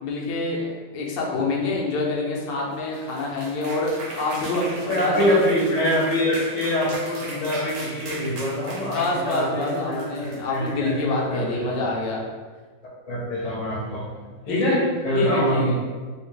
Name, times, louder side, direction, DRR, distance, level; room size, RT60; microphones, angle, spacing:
voice 1, 0.0-5.4 8.9-12.2 14.5-14.8 15.1-15.7, left 3 dB, 80° left, -2 dB, 1.3 m, -26 dB
sound 1, 2.7-11.0, right 2 dB, 65° right, 1.0 m, -38 dB
voice 2, 4.9-12.0 13.1-14.1 14.5-15.7, equal, 35° left, -5 dB, 0.7 m, -25 dB
3.4 x 2.8 x 3.1 m, 1.4 s
omnidirectional pair, 1.9 m